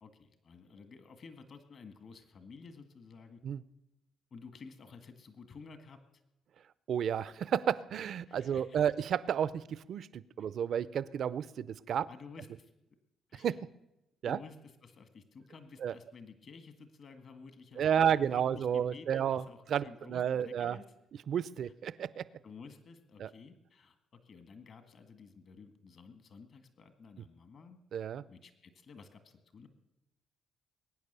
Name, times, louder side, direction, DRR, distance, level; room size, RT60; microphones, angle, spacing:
voice 1, 0.0-3.4 4.3-6.0 8.3-8.8 12.1-12.7 13.3-13.5 14.2-14.6 14.8-20.8 21.6-21.7 22.4-27.8 28.3-29.7, left 4 dB, 55° left, 9 dB, 1.8 m, -53 dB
voice 2, 6.9-12.1 13.3-13.7 14.2-14.4 15.8-15.9 17.8-20.8 21.3-22.3 23.2-23.3 27.9-28.2, right 8 dB, 65° right, 18 dB, 0.5 m, -32 dB
21.5 x 9.4 x 6.8 m, 0.94 s
cardioid pair, 90°, 0 cm